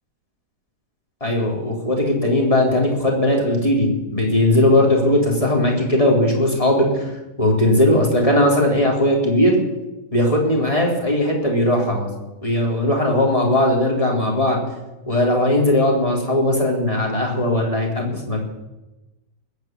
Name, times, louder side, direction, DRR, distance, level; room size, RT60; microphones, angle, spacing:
voice 1, 1.2-7.1 7.4-9.6 10.1-12.1 12.4-14.6 15.1-18.4, left 1 dB, 20° left, -1 dB, 3.5 m, -18 dB
19.5 x 8.5 x 7.6 m, 1.0 s
omnidirectional pair, 1.9 m